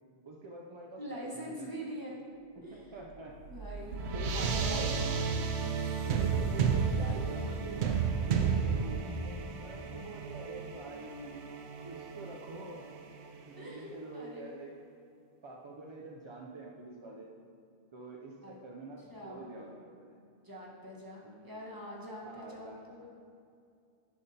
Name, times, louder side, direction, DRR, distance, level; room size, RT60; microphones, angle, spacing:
voice 1, 0.2-1.9 2.6-3.3 3.8-4.9 6.1-11.4 11.8-12.9 13.5-14.7 15.4-17.3 17.9-20.2 21.2-21.6 22.2-23.1, right 2 dB, 45° right, -1 dB, 0.4 m, -46 dB
voice 2, 1.0-2.2 2.6-3.0 3.3-5.3 13.6-14.5 18.4-18.6 19.0-19.7 20.4-23.1, equal, 20° right, -4 dB, 1.2 m, -44 dB
sound 1, 3.0-13.8, right 6 dB, 85° right, 0.9 m, -33 dB
10.5 x 5.3 x 2.8 m, 2.4 s
omnidirectional pair, 1.1 m